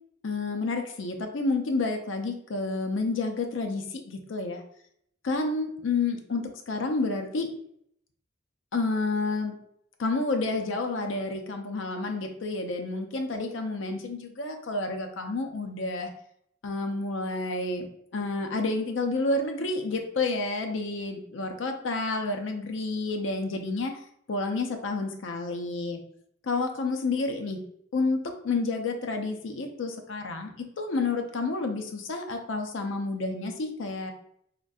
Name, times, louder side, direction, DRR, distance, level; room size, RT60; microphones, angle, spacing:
voice 1, 0.2-4.6 5.2-7.5 8.7-9.5 10.0-16.1 16.6-17.9 18.1-23.9 24.3-26.0 26.4-27.6 27.9-28.2 28.4-30.5 30.8-34.1, left 3 dB, 65° left, 4 dB, 0.5 m, -29 dB
3.6 x 2.3 x 2.6 m, 0.70 s
head